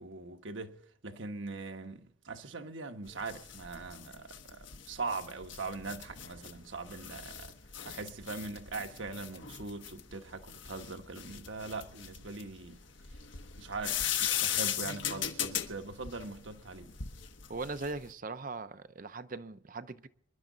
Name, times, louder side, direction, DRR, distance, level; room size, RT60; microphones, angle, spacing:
voice 1, 0.0-7.6 7.8-12.8 13.6-17.0, right 3 dB, 65° right, 1.2 m, -41 dB
sound 1, 3.1-18.1, left 9 dB, 65° left, 1.2 m, -38 dB
voice 2, 17.5-20.1, right 3 dB, 40° right, 0.7 m, -40 dB
26.5 x 11.5 x 4.0 m
head